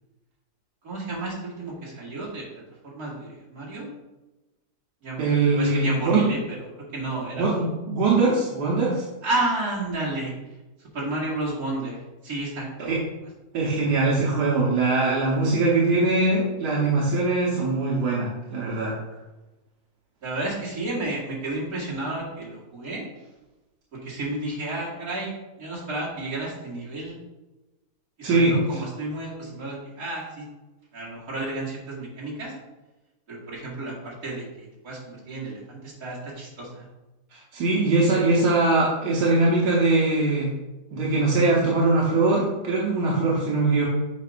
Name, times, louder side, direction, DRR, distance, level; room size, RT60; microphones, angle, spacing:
voice 1, 0.8-2.4 2.8-3.9 5.0-6.7 6.9-7.5 9.2-10.3 10.9-12.9 20.2-23.0 24.0-25.3 25.6-27.2 28.2-30.5 30.9-32.5 33.3-36.9, right 2 dB, 65° right, -7 dB, 2.8 m, -31 dB
voice 2, 5.2-6.3 7.4-9.0 12.8-13.0 13.5-19.0 28.2-28.6 37.3-40.5 40.9-43.8, right 3 dB, 90° right, -5 dB, 1.7 m, -22 dB
8.1 x 5.3 x 2.5 m, 1.1 s
omnidirectional pair, 1.7 m